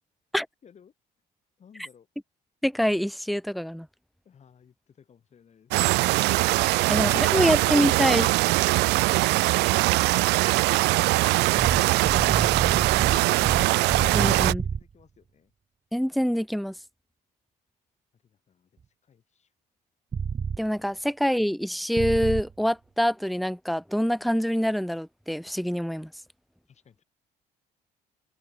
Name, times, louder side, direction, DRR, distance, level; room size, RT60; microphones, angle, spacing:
voice 1, 0.6-0.9 1.6-2.1 4.2-6.2 6.7-7.7 10.0-13.6 13.9-15.5 18.1-19.5 26.7-27.0, left 7 dB, 40° left, 7.8 m, -56 dB
voice 2, 2.6-3.9 6.9-8.3 14.1-14.6 15.9-16.7 20.6-26.1, equal, ahead, 1.0 m, -25 dB
sound 1, 5.7-14.5, right 21 dB, 85° right, 0.5 m, -22 dB
sound 2, 11.6-14.8 20.1-20.6 22.0-22.4, right 6 dB, 30° right, 1.6 m, -28 dB
cardioid pair, 110°, 17 cm